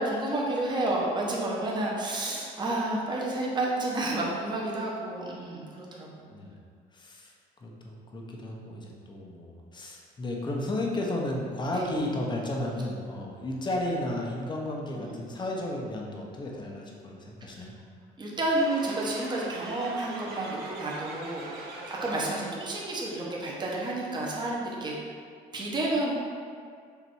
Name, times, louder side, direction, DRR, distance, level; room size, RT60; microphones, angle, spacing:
voice 1, 0.0-6.3 11.7-11.9 15.0-15.1 17.4-17.5 18.2-24.9 25.5-26.1, right 2 dB, 25° right, -4 dB, 1.3 m, -30 dB
voice 2, 6.9-7.3 7.6-17.7, left 1 dB, 25° left, -1 dB, 1.0 m, -33 dB
sound 1, 18.6-22.7, right 2 dB, 70° right, 1.1 m, -41 dB
6.9 x 3.0 x 4.7 m, 2.1 s
cardioid pair, 110°, 17 cm